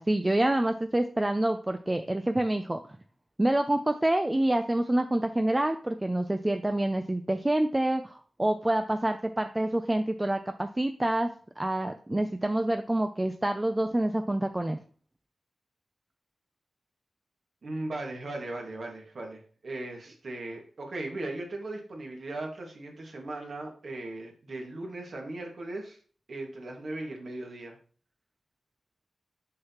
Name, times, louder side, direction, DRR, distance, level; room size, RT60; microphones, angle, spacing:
voice 1, 0.0-2.8 3.4-11.3 11.6-14.8, right 1 dB, 15° right, 7 dB, 0.4 m, -27 dB
voice 2, 17.6-26.0 26.3-27.8, right 2 dB, 55° right, 1 dB, 1.7 m, -38 dB
6.4 x 5.6 x 2.9 m, 0.43 s
wide cardioid pair, 120°, 0 cm